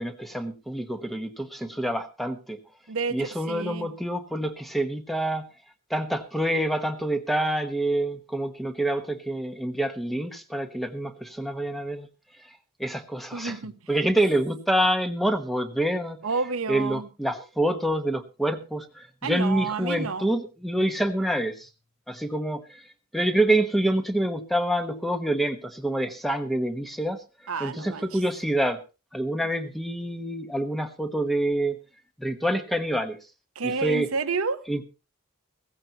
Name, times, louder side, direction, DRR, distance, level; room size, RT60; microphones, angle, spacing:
voice 1, 0.0-2.6 3.1-5.5 5.9-12.1 12.8-13.6 13.9-16.2 16.7-21.7 22.1-22.8 23.1-27.2 27.6-28.8 29.1-31.8 32.2-33.2 33.6-34.1 34.7-34.8, right 1 dB, ahead, 1.1 m, -27 dB
voice 2, 2.9-3.9 13.3-13.8 16.2-17.1 19.2-20.3 27.5-28.2 33.5-34.7, right 4 dB, 70° right, 0.9 m, -30 dB
16.5 x 15.0 x 2.9 m
head